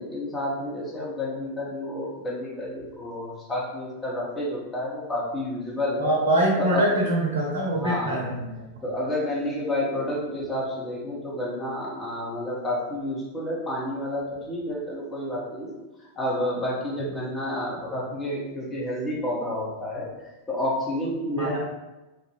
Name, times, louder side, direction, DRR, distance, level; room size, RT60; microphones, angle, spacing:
voice 1, 0.0-6.1 6.6-6.9 7.7-8.3 8.8-20.1 20.5-21.6, left 1 dB, 15° left, -4 dB, 1.0 m, -30 dB
voice 2, 6.0-8.5 21.4-21.6, right 1 dB, 65° right, -2 dB, 0.6 m, -24 dB
3.2 x 2.4 x 3.1 m, 1.1 s
figure-of-eight pair, 90°, 0 cm